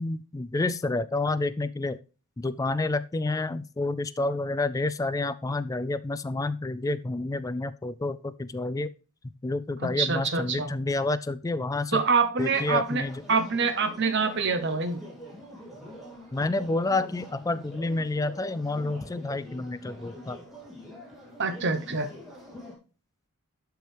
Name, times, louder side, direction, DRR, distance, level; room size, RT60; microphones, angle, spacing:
voice 1, 0.0-2.0 2.4-8.9 9.4-12.0 12.4-13.2 16.3-20.4, left 2 dB, 15° left, 14 dB, 0.3 m, -29 dB
voice 2, 9.8-10.7 11.9-15.0 21.4-22.1, right 4 dB, 50° right, 9 dB, 0.9 m, -26 dB
sound 1, 12.4-22.7, left 1 dB, ahead, 2.5 m, -45 dB
12.0 x 4.6 x 3.3 m, 0.35 s
head